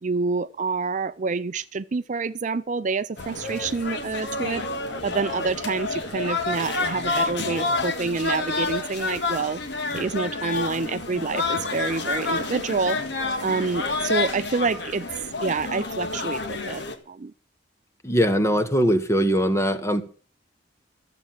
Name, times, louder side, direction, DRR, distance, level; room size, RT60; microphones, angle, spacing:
voice 1, 0.0-4.6 5.0-9.6 9.9-13.0 13.4-15.1 15.4-17.3, right 4 dB, 45° right, 0.5 m, -27 dB
sound 1, 3.2-17.0, left 3 dB, 65° left, 1.9 m, -29 dB
voice 2, 18.0-20.0, equal, 15° left, 1.2 m, -21 dB
13.5 x 7.8 x 7.3 m
head